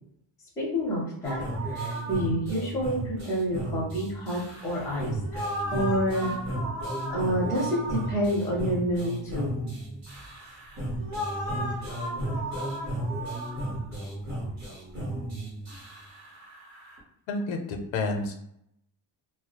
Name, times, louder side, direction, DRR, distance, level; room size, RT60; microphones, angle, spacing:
voice 1, 0.6-1.4 1.6-5.4 5.7-6.3 7.1-9.5, equal, 5° left, -5 dB, 0.4 m, -28 dB
sound 1, 1.2-17.0, right 1 dB, 35° right, 0.7 m, -33 dB
voice 2, 17.3-18.4, left 3 dB, 70° left, 5 dB, 0.5 m, -30 dB
2.2 x 2.0 x 2.7 m, 0.76 s
cardioid pair, 180°, 47 cm